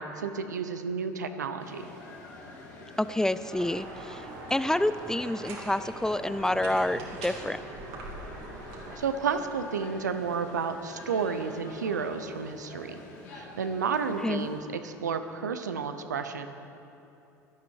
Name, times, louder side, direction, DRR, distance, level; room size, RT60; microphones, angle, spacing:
voice 1, 0.0-1.9 9.0-13.0 13.3-16.5, right 5 dB, 85° right, 9 dB, 0.8 m, -31 dB
sound 1, 1.6-14.6, left 2 dB, 70° left, 2.5 m, -47 dB
voice 2, 3.0-4.3 4.5-7.6 14.2-14.5, left 1 dB, 5° left, 14 dB, 0.4 m, -28 dB
sound 2, 3.5-8.9, right 2 dB, 65° right, 2.6 m, -42 dB
16.5 x 11.5 x 4.7 m, 2.9 s
hypercardioid pair, 70°, 9 cm